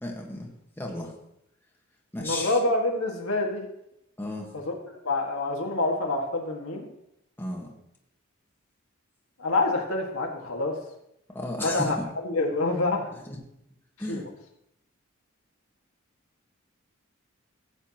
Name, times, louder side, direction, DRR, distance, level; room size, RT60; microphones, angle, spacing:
voice 1, 0.0-0.5 0.8-1.1 2.1-2.6 4.2-4.5 7.4-7.7 11.3-12.1 13.3-13.4 14.0-14.2, left 1 dB, 10° left, -1 dB, 1.4 m, -33 dB
voice 2, 2.2-3.7 4.5-4.8 5.0-6.9 9.4-10.8 11.6-12.0 12.2-13.1 14.1-14.3, left 2 dB, 80° left, 1 dB, 1.8 m, -27 dB
15.5 x 8.2 x 2.9 m, 0.81 s
head